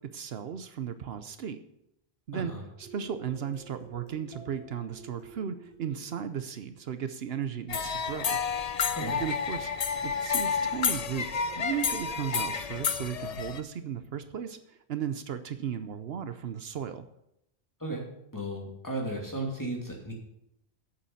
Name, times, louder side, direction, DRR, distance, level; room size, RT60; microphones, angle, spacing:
voice 1, 0.1-1.6 2.3-2.5 2.8-8.4 9.2-11.3 11.6-17.1, right 8 dB, 75° right, 11 dB, 1.0 m, -35 dB
voice 2, 2.3-2.6 8.9-9.2 17.8-18.0 18.3-20.1, right 1 dB, 20° left, -1 dB, 2.7 m, -34 dB
sound 1, 2.8-7.3, right 3 dB, 5° right, 3.3 m, -51 dB
sound 2, 7.7-13.6, left 6 dB, 45° left, 0.6 m, -30 dB
8.5 x 7.1 x 8.6 m, 0.81 s
omnidirectional pair, 1.1 m